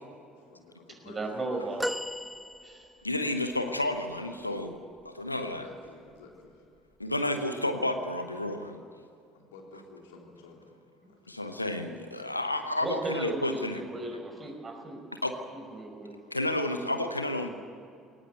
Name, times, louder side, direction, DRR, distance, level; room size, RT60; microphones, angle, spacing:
voice 1, 0.4-1.2 1.5-1.6 5.3-6.7 9.3-10.8 11.1-11.3, left 3 dB, 70° left, 1 dB, 3.5 m, -52 dB
voice 2, 1.1-1.8 2.6-2.9 12.8-15.0 15.5-16.2, right 2 dB, 30° right, 3 dB, 5.3 m, -35 dB
sound 1, 1.8-3.2 3.9-4.0, equal, ahead, 0.7 m, -35 dB
voice 3, 3.0-4.8 5.0-5.6 7.0-8.8 11.3-13.8 15.2-15.3 16.3-17.5, left 1 dB, 90° left, 7 dB, 0.9 m, -31 dB
21.0 x 18.5 x 8.0 m, 2.5 s
figure-of-eight pair, 55°, 0 cm